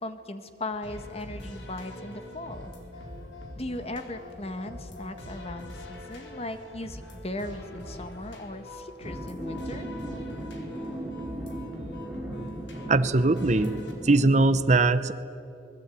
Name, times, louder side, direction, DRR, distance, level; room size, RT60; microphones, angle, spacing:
voice 1, 0.0-2.7 3.5-9.9, left 1 dB, 35° left, 8 dB, 1.7 m, -38 dB
sound 1, 0.8-13.9, left 1 dB, 75° left, 4.3 m, -43 dB
sound 2, 9.0-14.4, right 1 dB, 5° right, 3.5 m, -37 dB
voice 2, 12.9-13.7 14.0-15.1, right 2 dB, 40° right, 13 dB, 0.8 m, -21 dB
26.5 x 21.0 x 9.4 m, 2.8 s
head